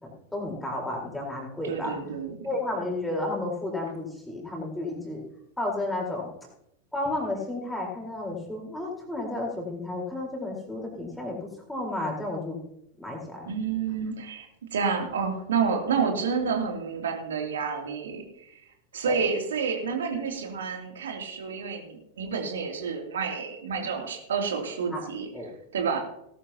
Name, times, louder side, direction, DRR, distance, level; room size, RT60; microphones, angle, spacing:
voice 1, 0.0-2.0 2.4-5.2 5.6-6.3 6.9-11.4 11.7-12.6 13.0-13.5 19.0-19.2 24.9-25.0 25.3-25.5, left 2 dB, 5° left, -1 dB, 4.2 m, -32 dB
voice 2, 1.6-2.3 13.5-18.5 18.9-26.0, right 5 dB, 65° right, 2 dB, 2.8 m, -29 dB
19.0 x 12.0 x 2.9 m, 0.78 s
figure-of-eight pair, 90°, 0 cm